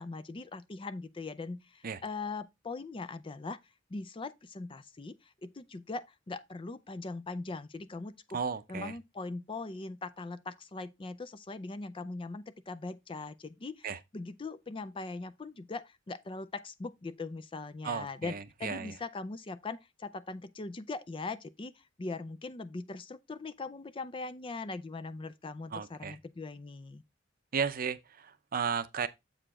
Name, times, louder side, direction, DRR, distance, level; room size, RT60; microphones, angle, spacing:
voice 1, 0.0-3.6 3.9-8.4 8.7-13.9 14.1-27.0, left 3 dB, 25° left, 0.4 m, -41 dB
voice 2, 8.3-8.9 13.8-14.0 17.8-19.0 25.7-26.2 27.5-29.1, right 6 dB, 45° right, 0.6 m, -34 dB
7.8 x 4.8 x 3.7 m
head